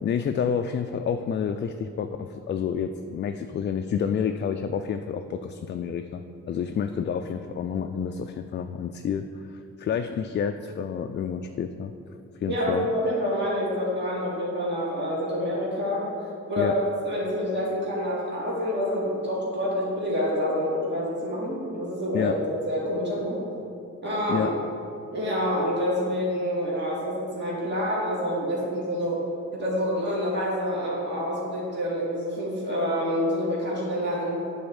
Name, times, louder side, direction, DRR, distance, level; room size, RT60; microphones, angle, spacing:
voice 1, 0.0-11.9 12.4-12.9 16.6-16.8 22.1-22.4 24.3-24.5, left 7 dB, 35° left, 6 dB, 0.4 m, -29 dB
voice 2, 12.5-16.1 16.5-22.3 22.6-23.4 24.0-24.5 25.1-29.2 29.5-34.4, equal, 35° right, -6 dB, 2.1 m, -27 dB
8.7 x 4.2 x 7.1 m, 2.6 s
cardioid pair, 90°, 30 cm